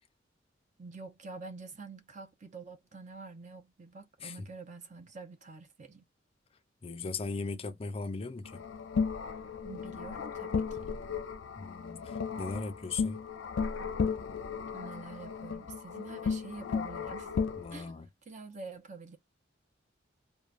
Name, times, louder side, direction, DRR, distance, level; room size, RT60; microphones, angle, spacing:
voice 1, 0.8-6.0 9.6-10.9 14.7-17.4 17.7-18.0 18.3-19.2, right 4 dB, 40° right, 0.6 m, -47 dB
voice 2, 6.8-8.6 11.6-13.3 17.6-18.1, left 4 dB, 30° left, 0.4 m, -38 dB
sound 1, 8.4-17.8, left 5 dB, 90° left, 0.5 m, -35 dB
3.0 x 2.2 x 2.4 m
head